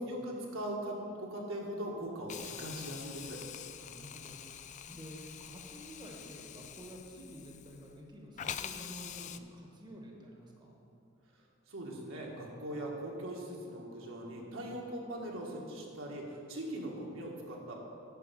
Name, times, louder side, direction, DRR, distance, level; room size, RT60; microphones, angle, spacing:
voice 1, 0.0-3.4 11.7-17.8, right 1 dB, 75° right, -2 dB, 1.7 m, -40 dB
Hiss, 2.3-8.0 8.4-9.4, left 9 dB, 35° left, 0.3 m, -45 dB
voice 2, 3.9-10.7, equal, 20° right, -1 dB, 1.2 m, -50 dB
11.0 x 4.8 x 7.5 m, 2.8 s
head